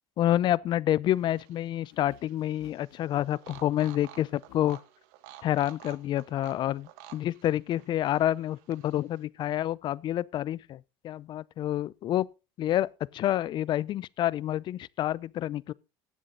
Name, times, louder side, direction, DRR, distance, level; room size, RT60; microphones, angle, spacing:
voice 1, 0.2-4.8 5.4-12.3 12.6-12.9 13.1-15.7, left 12 dB, 45° left, 0.5 m, -28 dB
sound 1, 1.1-9.2, right 12 dB, 75° right, 1.5 m, -53 dB
sound 2, 1.9-4.7, left 11 dB, 70° left, 1.7 m, -55 dB
18.0 x 7.4 x 3.8 m
supercardioid pair, 115°, 11 cm